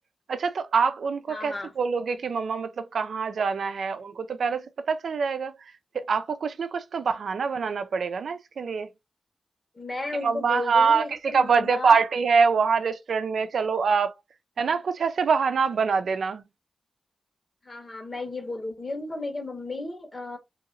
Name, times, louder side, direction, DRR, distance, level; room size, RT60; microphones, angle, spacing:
voice 1, 0.3-5.5 5.9-8.9 10.2-14.1 14.6-16.4, right 5 dB, 80° right, 0.4 m, -25 dB
voice 2, 1.3-1.7 9.7-12.0 17.6-20.4, left 2 dB, 45° left, 1.3 m, -34 dB
2.8 x 2.8 x 2.6 m
cardioid pair, 45°, 0 cm